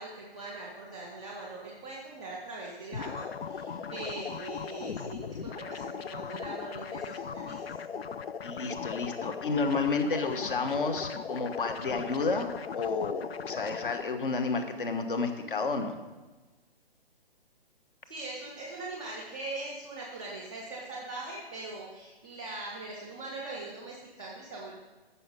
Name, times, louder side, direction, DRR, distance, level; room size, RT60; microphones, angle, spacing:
voice 1, 0.0-7.7 18.1-24.8, right 2 dB, 5° left, -8 dB, 0.3 m, -41 dB
sound 1, 2.9-14.0, left 6 dB, 80° left, 0.5 m, -38 dB
voice 2, 8.4-16.0, left 4 dB, 60° left, 8 dB, 1.2 m, -31 dB
13.0 x 5.7 x 5.3 m, 1.2 s
figure-of-eight pair, 135°, 30 cm